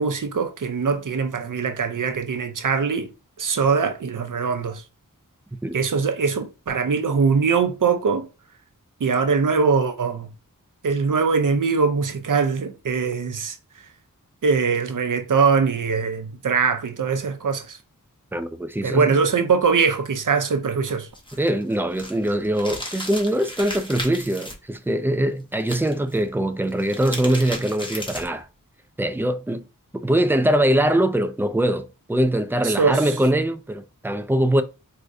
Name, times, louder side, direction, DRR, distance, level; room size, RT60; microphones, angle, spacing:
voice 1, 0.0-3.1 3.4-4.8 5.7-8.3 9.0-10.3 10.8-13.6 14.4-17.8 18.8-21.1 32.6-33.0, right 5 dB, 70° right, 0.6 m, -22 dB
voice 2, 18.3-19.2 21.3-28.5 29.0-29.6 29.9-34.6, right 1 dB, 5° right, 0.3 m, -22 dB
sound 1, 21.1-24.5 25.6-26.2 26.7-28.4, left 1 dB, 15° left, 0.9 m, -35 dB
4.8 x 2.2 x 2.6 m
wide cardioid pair, 60°, 33 cm